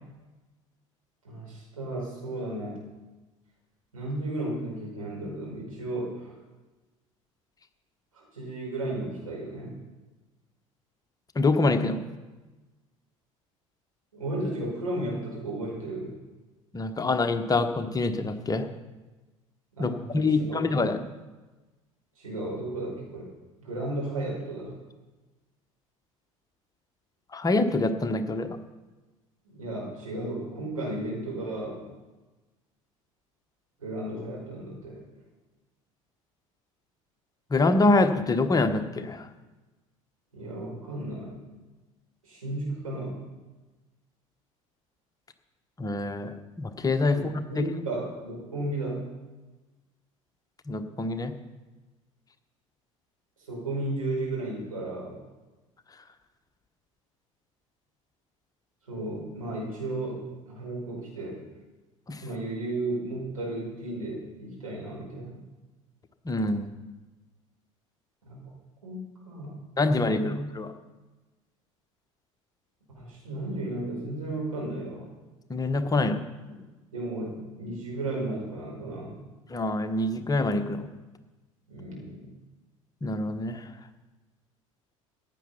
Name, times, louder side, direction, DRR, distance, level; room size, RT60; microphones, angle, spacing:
voice 1, 1.2-2.8 3.9-6.4 8.1-9.8 14.1-16.1 19.8-20.7 22.2-23.3 23.6-24.7 29.5-31.8 33.8-34.9 40.3-41.4 42.2-43.2 47.1-49.0 53.5-55.2 58.9-60.2 60.5-61.4 62.2-65.4 68.3-68.5 68.8-69.6 69.8-70.4 73.0-75.1 76.9-79.2 81.7-82.3, right 2 dB, 80° right, -3 dB, 5.4 m, -34 dB
voice 2, 11.3-12.0 16.7-18.7 19.8-21.0 27.3-28.6 37.5-39.3 45.8-47.2 47.6-47.7 50.7-51.3 62.1-62.2 66.2-66.7 69.8-70.7 75.5-76.2 79.5-80.9 83.0-83.7, left 2 dB, 20° left, 7 dB, 1.2 m, -25 dB
15.5 x 10.0 x 5.8 m, 1.2 s
figure-of-eight pair, 65°, 18 cm